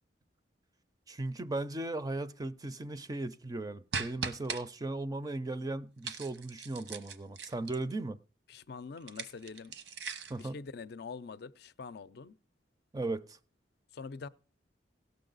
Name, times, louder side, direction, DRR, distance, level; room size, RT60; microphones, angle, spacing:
voice 1, 1.1-8.2 10.3-10.5 12.9-13.4, right 2 dB, 20° right, 0.4 m, -37 dB
sound 1, 3.9-4.6 6.0-7.9 9.0-10.4, right 5 dB, 90° right, 1.0 m, -39 dB
voice 2, 8.5-9.7 10.3-12.4 13.9-14.3, left 4 dB, 65° left, 0.5 m, -44 dB
16.5 x 6.7 x 3.9 m
head